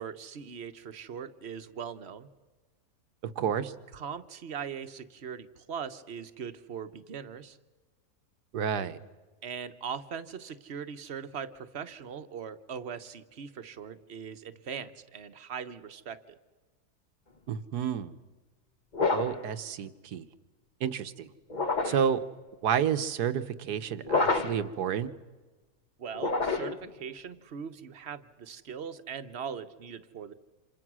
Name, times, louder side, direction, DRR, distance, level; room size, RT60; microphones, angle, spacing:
voice 1, 0.0-2.3 3.9-7.6 9.4-16.4 26.0-30.3, right 7 dB, 45° right, 11 dB, 1.2 m, -40 dB
voice 2, 3.2-3.7 8.5-9.0 17.5-18.1 19.1-20.3 20.8-21.3 21.8-22.2 22.6-25.1, right 8 dB, 80° right, 12 dB, 1.6 m, -30 dB
sound 1, 18.9-19.5 21.5-22.1 24.0-24.7 26.1-26.9, left 3 dB, 30° left, 1.1 m, -28 dB
27.5 x 27.0 x 6.2 m, 1.3 s
omnidirectional pair, 1.7 m